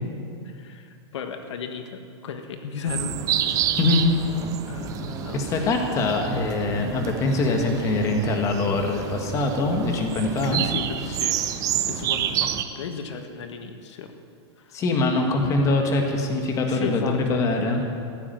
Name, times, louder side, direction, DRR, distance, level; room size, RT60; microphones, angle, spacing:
voice 1, 0.4-3.2 3.4-3.8 4.7-5.6 10.4-14.1 14.6-14.8 16.7-17.5, left 5 dB, 80° left, 6 dB, 1.5 m, -35 dB
sound 1, 2.9-12.6, right 10 dB, 25° right, 0.6 m, -29 dB
voice 2, 3.8-4.1 5.3-10.6 14.7-17.8, left 2 dB, 20° left, 3 dB, 1.5 m, -23 dB
15.0 x 8.6 x 9.1 m, 2.4 s
supercardioid pair, 160°, 15 cm